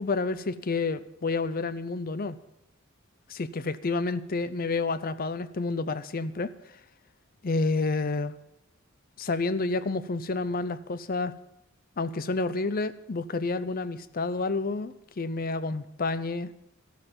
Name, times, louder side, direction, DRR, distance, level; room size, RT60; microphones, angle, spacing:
voice 1, 0.0-2.4 3.3-6.5 7.4-8.3 9.2-11.3 12.0-16.5, left 3 dB, 40° left, 15 dB, 0.6 m, -29 dB
13.5 x 12.5 x 5.3 m, 0.84 s
head